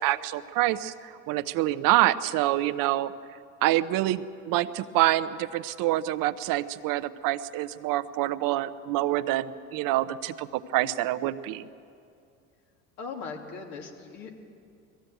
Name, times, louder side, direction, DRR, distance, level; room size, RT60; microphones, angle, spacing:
voice 1, 0.0-3.1 3.6-11.7, right 15 dB, 60° right, 12 dB, 0.8 m, -26 dB
voice 2, 13.0-14.3, left 5 dB, 70° left, 1 dB, 3.1 m, -39 dB
19.5 x 15.0 x 9.1 m, 2.4 s
hypercardioid pair, 85°, 38 cm